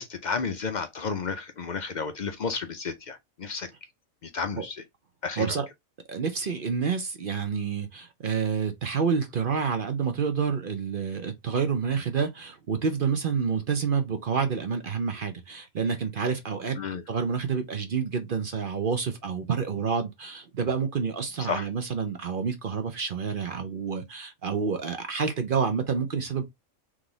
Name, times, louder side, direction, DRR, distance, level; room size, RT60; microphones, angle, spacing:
voice 1, 0.0-3.7 4.2-4.8 5.2-5.5 16.8-17.0 21.5-21.7, left 5 dB, 55° left, 0.5 m, -32 dB
voice 2, 6.1-16.8 17.1-26.4, right 6 dB, 50° right, 0.7 m, -28 dB
3.7 x 3.2 x 3.8 m
omnidirectional pair, 1.4 m